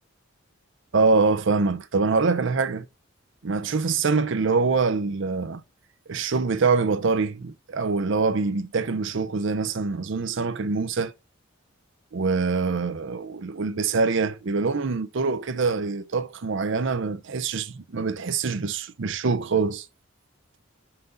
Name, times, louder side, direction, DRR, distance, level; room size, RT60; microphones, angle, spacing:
voice 1, 0.9-2.9 3.4-5.6 6.1-11.1 12.1-19.9, right 4 dB, 60° right, 0.6 m, -24 dB
5.8 x 3.9 x 5.6 m
head